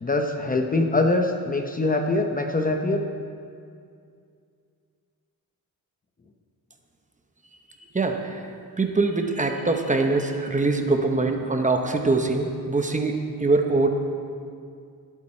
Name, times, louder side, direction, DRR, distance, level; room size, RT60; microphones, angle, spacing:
voice 1, 0.0-3.1, left 2 dB, 25° left, 4 dB, 0.7 m, -23 dB
voice 2, 7.9-8.5 8.8-13.9, right 3 dB, 20° right, 4 dB, 0.9 m, -23 dB
19.0 x 8.6 x 4.4 m, 2.3 s
wide cardioid pair, 135°, 37 cm